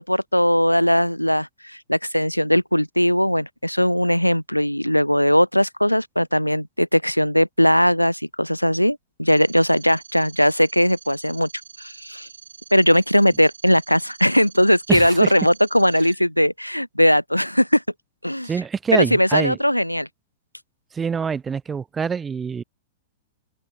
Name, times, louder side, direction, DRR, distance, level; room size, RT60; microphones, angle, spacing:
voice 1, 0.0-11.5 11.8-12.3 12.7-17.8 18.2-18.5 18.9-20.1, equal, 90° left, 0.4 m, -19 dB
sound 1, 9.3-16.1, right 5 dB, 70° right, 7.5 m, -45 dB
voice 2, 14.9-15.3 18.4-19.6 20.9-22.6, right 6 dB, 15° right, 0.4 m, -25 dB
figure-of-eight pair, 100°, 0 cm